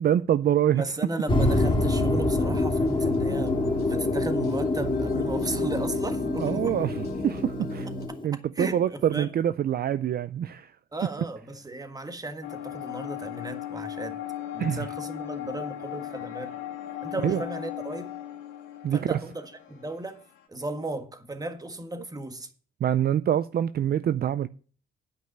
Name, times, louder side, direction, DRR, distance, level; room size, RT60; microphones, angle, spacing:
voice 1, 0.0-0.8 6.4-7.9 8.2-10.7 14.6-14.8 17.2-17.4 18.8-19.2 22.8-24.5, right 10 dB, 50° right, 0.5 m, -25 dB
voice 2, 0.7-6.9 8.3-9.3 10.9-14.2 14.5-16.5 17.0-18.1 18.9-20.2 20.5-22.5, right 2 dB, 20° right, 1.6 m, -35 dB
sound 1, 1.3-8.2, left 2 dB, 25° left, 2.9 m, -26 dB
sound 2, 2.8-8.1, left 1 dB, 50° left, 3.0 m, -36 dB
sound 3, 12.4-20.4, left 12 dB, 80° left, 2.0 m, -37 dB
9.4 x 5.6 x 8.3 m
cardioid pair, 90°, 20 cm